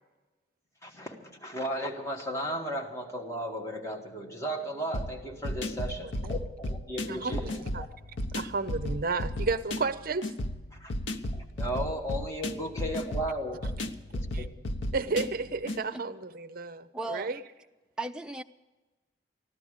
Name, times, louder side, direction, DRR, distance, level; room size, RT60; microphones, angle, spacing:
voice 1, 0.8-7.9 10.7-10.9 11.3-13.7 14.1-14.5, equal, 15° left, 0 dB, 1.8 m, -35 dB
sound 1, 4.9-15.8, left 1 dB, 80° left, 0.8 m, -35 dB
voice 2, 5.8-6.3 7.1-10.3 14.3-14.5 14.9-17.4, right 4 dB, 50° right, 13 dB, 0.6 m, -33 dB
voice 3, 16.9-17.3 18.0-18.4, right 2 dB, 5° right, 5 dB, 0.5 m, -37 dB
15.0 x 12.0 x 6.6 m, 1.2 s
head